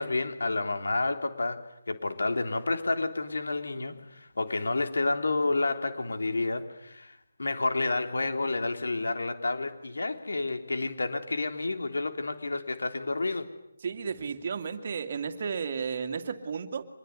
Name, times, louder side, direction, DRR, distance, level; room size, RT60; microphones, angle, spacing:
voice 1, 0.0-13.5, left 3 dB, 85° left, 7 dB, 3.4 m, -30 dB
voice 2, 13.8-16.8, right 6 dB, 30° right, 6 dB, 2.3 m, -33 dB
26.0 x 21.5 x 9.7 m, 0.81 s
hypercardioid pair, 175°, 0 cm